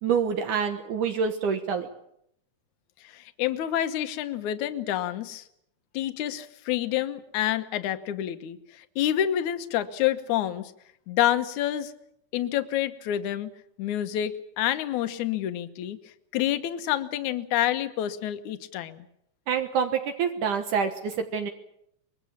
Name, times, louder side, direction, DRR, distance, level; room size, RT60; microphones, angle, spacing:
voice 1, 0.0-1.9 19.5-21.5, right 6 dB, 70° right, 6 dB, 2.7 m, -26 dB
voice 2, 3.0-5.4 5.9-10.7 11.1-11.9 12.3-13.5 13.8-19.1, left 12 dB, 70° left, 10 dB, 2.4 m, -28 dB
24.5 x 21.5 x 7.2 m, 0.75 s
omnidirectional pair, 3.8 m